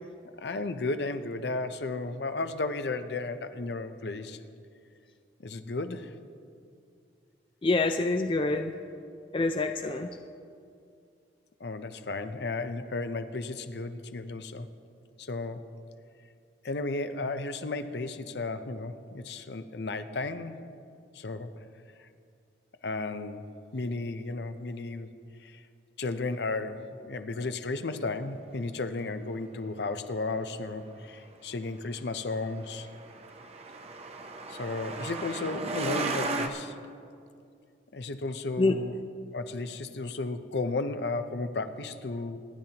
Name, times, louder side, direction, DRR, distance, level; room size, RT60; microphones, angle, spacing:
voice 1, 0.2-4.4 5.4-6.2 11.6-14.7 15.2-15.6 16.6-20.6 21.1-21.5 22.0-22.1 22.8-25.1 25.4-25.6 26.0-32.9 34.5-36.8 37.9-39.0 39.3-42.4, left 3 dB, 65° left, 10 dB, 0.7 m, -34 dB
voice 2, 7.6-8.7 9.3-10.1 38.6-38.8, left 2 dB, 25° left, 6 dB, 0.4 m, -26 dB
Truck, 32.4-36.5, right 2 dB, 35° right, 0.7 m, -34 dB
24.5 x 10.5 x 2.9 m, 2.4 s
head